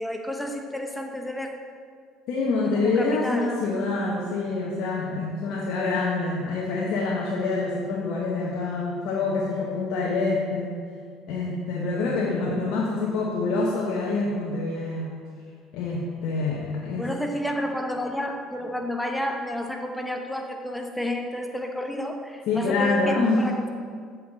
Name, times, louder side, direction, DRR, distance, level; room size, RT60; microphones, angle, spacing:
voice 1, 0.0-1.5 2.8-3.6 17.0-23.7, left 1 dB, 5° left, 3 dB, 0.9 m, -31 dB
voice 2, 2.3-10.7 11.3-15.1 15.7-17.1 22.5-23.5, left 3 dB, 65° left, -3 dB, 0.9 m, -26 dB
7.7 x 5.6 x 4.0 m, 2.1 s
hypercardioid pair, 75°, 0 cm